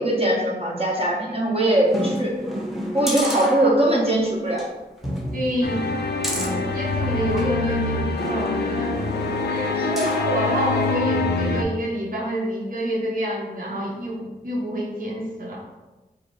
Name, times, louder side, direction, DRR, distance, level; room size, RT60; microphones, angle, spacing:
voice 1, 0.0-2.3 2.9-4.7 9.7-9.9, right 1 dB, 35° right, -3 dB, 1.2 m, -21 dB
sound 1, 1.9-4.1 4.5-4.7 5.0-7.5 8.2-10.4 10.8-10.9, equal, ahead, 0.9 m, -30 dB
voice 2, 5.3-6.0 6.7-9.0 9.5-15.7, equal, 55° right, -2 dB, 0.9 m, -27 dB
sound 2, 5.6-11.6, left 3 dB, 80° left, 0.4 m, -25 dB
4.8 x 2.0 x 4.5 m, 1.1 s
cardioid pair, 55°, 17 cm